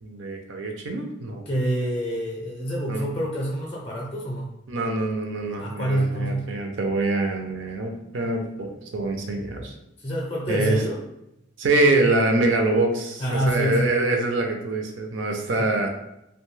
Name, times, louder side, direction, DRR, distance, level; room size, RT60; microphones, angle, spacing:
voice 1, 0.0-1.4 2.9-3.0 4.7-9.7 10.5-10.8 11.6-15.9, right 2 dB, 70° right, 3 dB, 0.5 m, -24 dB
voice 2, 1.5-4.5 5.6-6.5 10.0-11.0 13.2-13.9 15.6-15.7, right 1 dB, 30° left, -3 dB, 0.5 m, -27 dB
2.6 x 2.2 x 3.1 m, 0.85 s
head